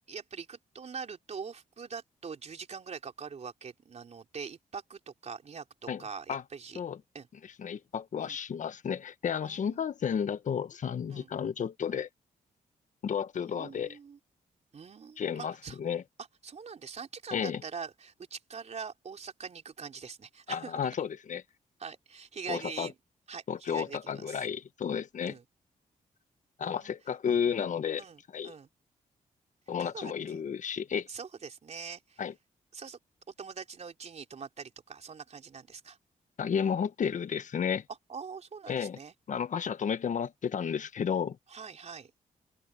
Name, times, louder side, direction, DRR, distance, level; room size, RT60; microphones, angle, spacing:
voice 1, 0.1-6.8 7.1-7.3 8.2-8.4 9.4-9.8 11.1-11.3 13.4-14.2 14.7-15.8 16.4-20.8 21.8-23.0 23.3-24.4 25.2-25.4 26.6-26.9 28.0-28.7 29.8-30.4 31.1-32.2 32.7-33.0 33.4-36.0 38.1-39.1 41.5-42.1, right 6 dB, 50° right, 3.7 m, -43 dB
voice 2, 7.6-12.1 13.0-14.0 15.2-16.0 17.3-17.6 20.5-21.4 22.5-22.9 23.5-25.4 26.6-28.0 28.3-28.5 29.7-31.1 32.2-32.3 36.4-37.8 38.7-39.0 39.3-41.4, left 7 dB, 60° left, 1.4 m, -32 dB
open air
cardioid pair, 80°, 14 cm